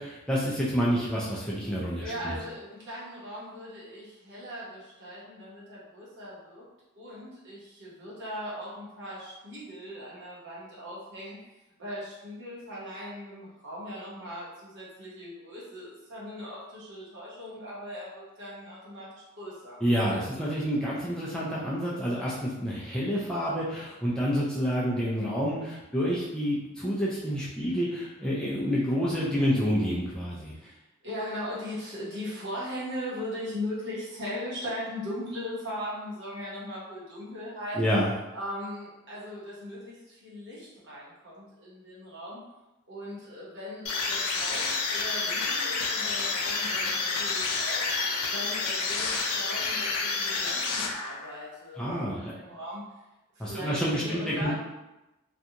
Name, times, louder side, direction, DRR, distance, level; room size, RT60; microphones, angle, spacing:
voice 1, 0.0-2.3 19.8-30.5 37.7-38.1 51.8-52.3 53.4-54.5, equal, 5° left, -7 dB, 0.3 m, -28 dB
voice 2, 2.0-6.7 7.0-11.4 11.8-19.8 30.6-37.8 38.3-42.4 42.9-47.9 48.3-52.8 53.3-54.5, equal, 55° right, -7 dB, 0.9 m, -39 dB
sound 1, 43.9-51.4, left 4 dB, 90° left, 0.4 m, -29 dB
2.5 x 2.2 x 2.7 m, 0.98 s
head